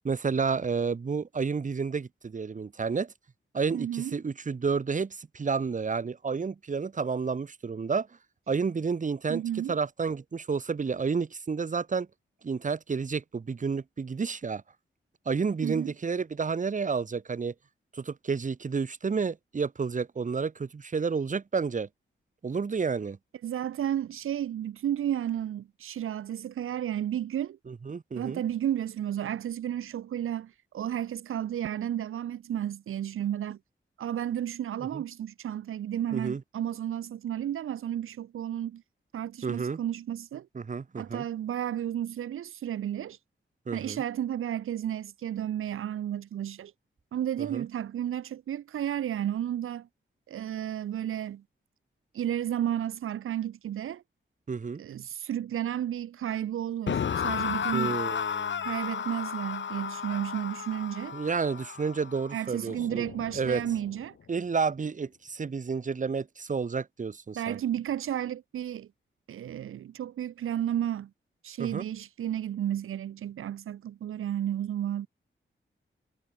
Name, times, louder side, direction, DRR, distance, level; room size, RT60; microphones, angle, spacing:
voice 1, 0.0-3.1 3.5-8.1 8.5-9.4 9.7-12.1 12.4-14.6 15.3-17.5 17.9-21.9 22.4-23.2 27.7-28.4 34.9-35.0 36.1-36.4 39.4-39.8 40.5-41.2 43.7-44.0 47.5-47.6 54.5-54.8 57.7-58.7 61.1-63.1 63.3-63.6 64.3-67.6 71.6-71.9, right 5 dB, 40° right, 0.9 m, -30 dB
voice 2, 3.7-4.1 9.3-9.8 15.6-15.9 23.4-27.6 28.2-33.6 34.0-38.8 39.1-40.5 41.0-43.2 43.7-46.7 47.1-49.9 50.3-51.4 52.1-54.0 54.8-58.0 58.6-61.1 62.3-64.2 67.3-68.9 69.3-71.1 71.4-75.1, right 10 dB, 80° right, 0.5 m, -32 dB
sound 1, 56.9-64.0, left 7 dB, 65° left, 1.0 m, -34 dB
cardioid pair, 80°, 21 cm